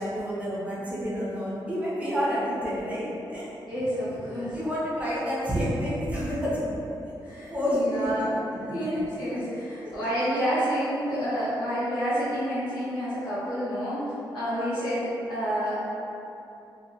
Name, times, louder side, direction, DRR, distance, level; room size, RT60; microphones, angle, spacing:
voice 1, 0.0-3.5 4.5-6.8 7.0-7.1 7.5-8.1 9.8-9.9, equal, 15° right, -8 dB, 0.5 m, -29 dB
voice 2, 3.6-4.6 6.2-6.4 7.2-8.3 8.7-15.8, equal, 70° left, -13 dB, 1.4 m, -29 dB
2.7 x 2.2 x 2.6 m, 2.7 s
wide cardioid pair, 170°, 8 cm